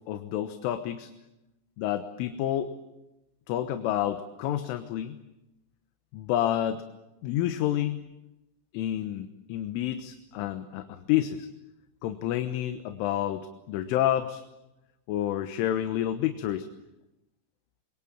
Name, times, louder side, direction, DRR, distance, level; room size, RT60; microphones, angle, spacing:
voice 1, 0.1-1.1 1.8-2.7 3.5-5.2 6.1-6.8 7.2-8.0 8.7-11.5 12.0-14.4 15.1-16.7, left 12 dB, 80° left, 8 dB, 3.7 m, -29 dB
28.0 x 22.0 x 8.9 m, 0.95 s
omnidirectional pair, 5.6 m